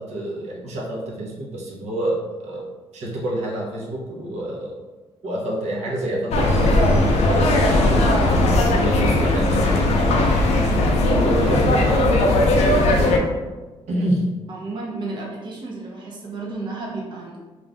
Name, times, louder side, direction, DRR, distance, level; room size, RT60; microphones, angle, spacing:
voice 1, 0.0-2.7 2.9-4.7 5.2-9.9 11.0-13.2 13.9-14.3, right 1 dB, 75° right, -4 dB, 0.8 m, -27 dB
sound 1, 6.3-13.2, left 2 dB, 70° left, 0.5 m, -18 dB
voice 2, 14.5-17.4, right 3 dB, 45° right, -3 dB, 0.6 m, -32 dB
2.5 x 2.4 x 3.3 m, 1.2 s
cardioid pair, 75°, 11 cm